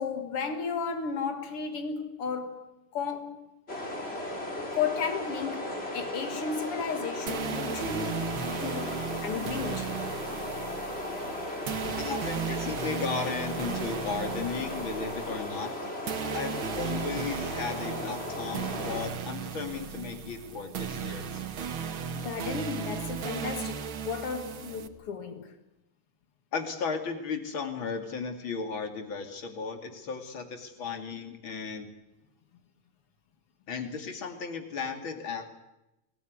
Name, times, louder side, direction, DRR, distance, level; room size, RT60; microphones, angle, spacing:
voice 1, 0.0-3.5 4.7-9.9 11.7-12.0 22.2-25.5, left 5 dB, 90° left, 2.8 m, -34 dB
sound 1, 3.7-19.1, left 1 dB, 25° left, 3.5 m, -36 dB
sound 2, 7.3-24.9, right 7 dB, 65° right, 2.2 m, -36 dB
voice 2, 12.0-15.7 16.3-21.4 26.5-31.9 33.7-35.5, left 5 dB, 65° left, 3.3 m, -35 dB
24.0 x 19.0 x 9.5 m
omnidirectional pair, 2.4 m